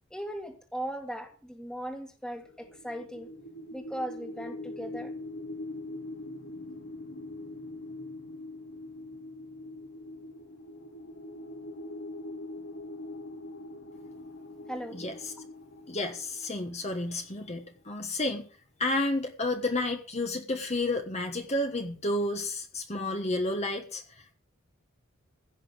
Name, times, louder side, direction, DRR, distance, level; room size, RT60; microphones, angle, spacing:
voice 1, 0.1-3.3 3.7-5.1 14.7-15.0, equal, 5° left, 5 dB, 1.7 m, -38 dB
sound 1, 2.4-17.5, left 2 dB, 70° left, 2.7 m, -43 dB
voice 2, 14.9-15.3 15.9-18.5 18.8-24.0, left 2 dB, 30° left, 5 dB, 1.3 m, -31 dB
16.0 x 6.0 x 7.7 m, 0.43 s
head